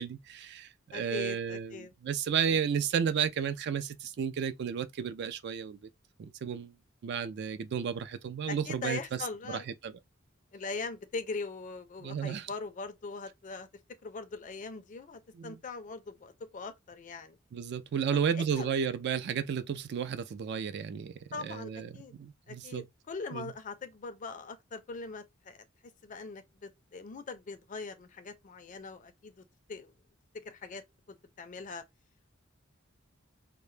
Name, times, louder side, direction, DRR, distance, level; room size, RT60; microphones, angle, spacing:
voice 1, 0.0-5.8 6.2-6.7 7.0-9.2 9.5-9.9 12.0-12.5 15.3-15.6 17.5-22.9 23.3-23.5, right 7 dB, 55° right, 0.3 m, -33 dB
voice 2, 0.9-1.9 8.5-9.7 10.5-13.7 14.0-17.4 18.3-18.7 21.3-22.1 22.5-25.6 26.0-29.9 30.3-31.8, left 4 dB, 40° left, 0.4 m, -41 dB
2.0 x 2.0 x 3.1 m
head